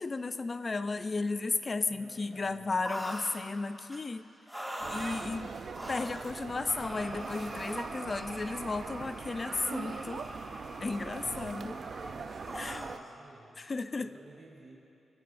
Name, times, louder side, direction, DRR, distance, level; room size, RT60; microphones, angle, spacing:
voice 1, 0.0-4.2 4.9-5.5 5.9-10.3 10.8-11.8 12.6-12.8 13.6-14.1, left 3 dB, 30° left, 11 dB, 0.5 m, -34 dB
voice 2, 1.8-2.7 11.3-13.7 14.0-14.7, right 2 dB, 30° right, -5 dB, 3.3 m, -54 dB
sound 1, 2.8-3.4 3.9-4.0 4.5-5.3 5.7-6.3 6.7-13.0, equal, 5° right, 1.8 m, -42 dB
sound 2, 4.8-13.0, right 5 dB, 50° right, 0.5 m, -42 dB
26.0 x 14.0 x 2.6 m, 2.7 s
wide cardioid pair, 135°, 0 cm